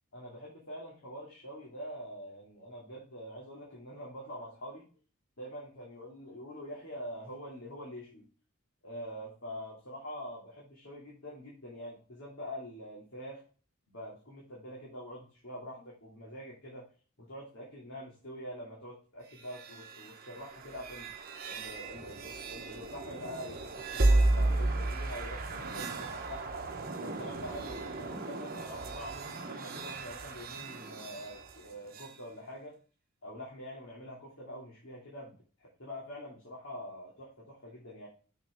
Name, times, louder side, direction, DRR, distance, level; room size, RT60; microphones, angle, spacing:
voice 1, 0.1-4.9 5.4-8.3 8.8-13.4 13.9-16.8 17.3-26.5 27.0-32.8 33.2-38.1, equal, 65° left, -3 dB, 2.6 m, -45 dB
sound 1, 19.3-32.2, right 2 dB, 45° right, 1.1 m, -34 dB
6.7 x 6.7 x 3.6 m, 0.38 s
head